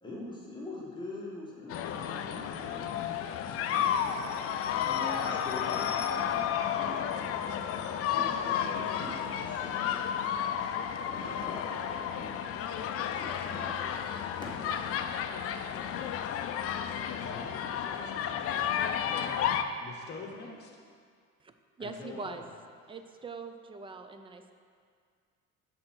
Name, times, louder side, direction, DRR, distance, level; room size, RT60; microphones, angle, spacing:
voice 1, 0.0-3.0 3.5-4.2 4.7-7.0 8.1-10.4 11.1-12.4 13.0-14.0 14.4-14.9, left 2 dB, 15° left, -5 dB, 1.4 m, -44 dB
sound 1, 1.7-19.6, left 9 dB, 50° left, 0.4 m, -32 dB
voice 2, 17.2-20.7 21.8-22.4, left 3 dB, 35° left, 0 dB, 1.1 m, -46 dB
voice 3, 21.8-22.5 22.9-24.5, right 4 dB, 20° right, 7 dB, 0.3 m, -42 dB
6.5 x 4.3 x 6.0 m, 2.1 s
cardioid pair, 130°, 30 cm